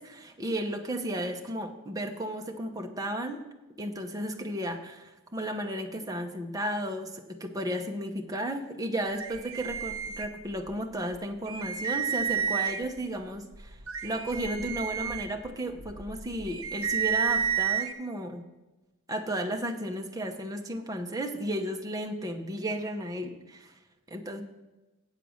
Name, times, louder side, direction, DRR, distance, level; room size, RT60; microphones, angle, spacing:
voice 1, 0.0-3.4 3.8-18.4 19.1-23.7 24.1-24.4, right 1 dB, 15° right, 3 dB, 0.8 m, -34 dB
sound 1, 9.2-10.7 11.1-11.2 11.5-13.0 13.5-17.9, right 8 dB, 65° right, 0.8 m, -31 dB
8.2 x 7.5 x 6.3 m, 1.1 s
head